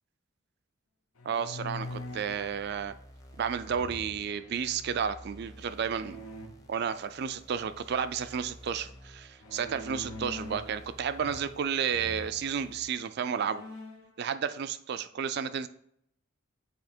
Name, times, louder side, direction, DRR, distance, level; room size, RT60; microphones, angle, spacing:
sound 1, 1.1-2.5 3.7-4.4 5.9-6.5 9.4-10.8 11.1-11.6 11.9-12.3 12.9-13.0 13.4-14.1, left 1 dB, 80° left, 0.9 m, -43 dB
voice 1, 1.2-2.9 3.4-6.2 6.7-13.6 14.2-15.7, right 7 dB, 50° right, 12 dB, 0.3 m, -32 dB
sound 2, 1.8-12.9, equal, 15° left, 0.7 m, -52 dB
8.2 x 2.8 x 4.3 m, 0.71 s
head